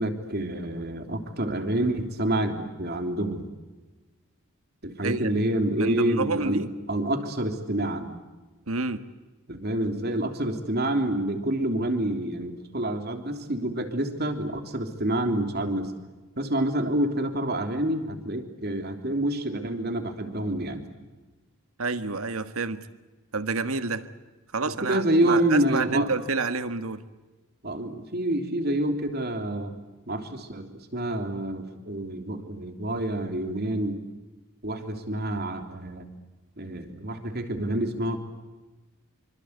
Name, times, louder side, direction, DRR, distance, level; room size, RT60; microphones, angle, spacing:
voice 1, 0.0-3.5 4.8-8.1 9.5-15.9 16.4-20.8 24.8-26.1 27.6-29.7 30.1-34.0 34.6-36.1 36.6-38.2, right 1 dB, 50° right, 6 dB, 3.3 m, -27 dB
voice 2, 5.8-6.7 8.7-9.0 21.8-22.8 23.3-24.1 24.5-27.0, right 3 dB, 80° right, 10 dB, 1.6 m, -29 dB
27.0 x 25.0 x 8.3 m, 1.2 s
head